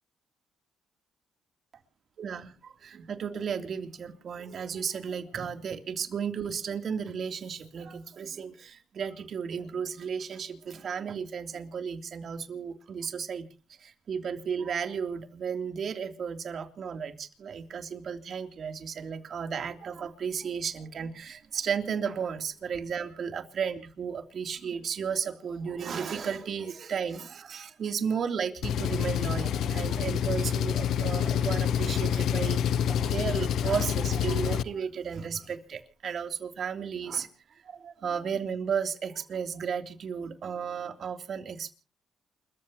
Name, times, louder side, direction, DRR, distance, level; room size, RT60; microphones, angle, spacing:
voice 1, 2.2-13.4 13.8-37.3 37.6-41.7, right 7 dB, 55° right, 6 dB, 3.2 m, -34 dB
Engine, 28.6-34.6, left 9 dB, 75° left, 0.7 m, -27 dB
29.0 x 14.5 x 3.0 m, 0.37 s
cardioid pair, 90°, 0 cm